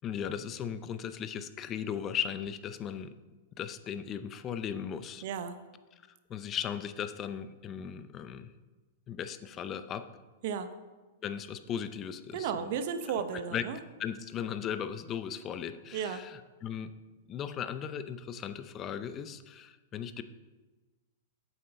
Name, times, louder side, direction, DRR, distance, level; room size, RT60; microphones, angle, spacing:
voice 1, 0.0-3.2 3.6-5.2 6.3-8.5 9.1-10.1 11.2-12.7 13.5-13.6 14.0-16.9 17.3-20.2, left 8 dB, 30° left, 12 dB, 0.7 m, -37 dB
voice 2, 5.2-5.6 10.4-10.8 12.3-13.8 15.9-16.3, right 7 dB, 55° right, 10 dB, 0.9 m, -34 dB
8.7 x 7.2 x 5.3 m, 1.2 s
hypercardioid pair, 105°, 0 cm